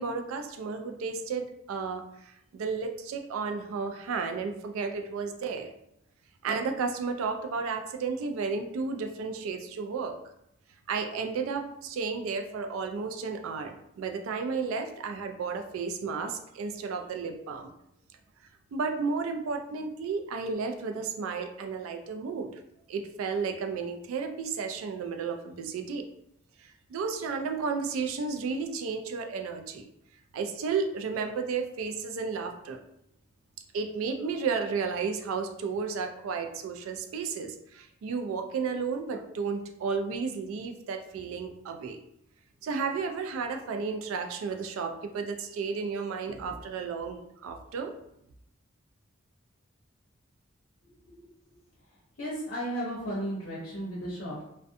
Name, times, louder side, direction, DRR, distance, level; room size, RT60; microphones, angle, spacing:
voice 1, 0.0-5.7 6.4-10.2 10.9-17.7 18.7-22.6 22.9-26.0 26.6-29.9 30.3-32.8 33.7-42.0 42.6-47.9, right 5 dB, 80° right, 5 dB, 0.3 m, -33 dB
voice 2, 52.2-54.4, equal, 55° left, -7 dB, 0.8 m, -34 dB
2.4 x 2.2 x 2.5 m, 0.77 s
head